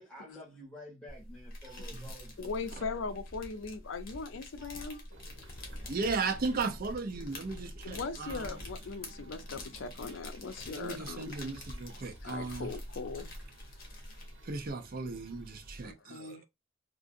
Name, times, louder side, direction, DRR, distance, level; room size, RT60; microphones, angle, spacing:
voice 1, 0.0-3.1 4.6-5.0, equal, 5° left, 1.3 m, -51 dB
sound 1, 1.1-14.7, left 1 dB, 50° left, 1.2 m, -46 dB
voice 2, 2.4-5.0 7.8-11.4 12.2-13.3 15.8-16.4, left 4 dB, 75° left, 0.5 m, -40 dB
sound 2, 5.1-15.9, right 1 dB, 85° right, 1.0 m, -54 dB
voice 3, 5.9-8.6 10.7-12.7 14.4-16.5, right 4 dB, 50° right, 0.6 m, -36 dB
3.7 x 2.5 x 2.5 m
head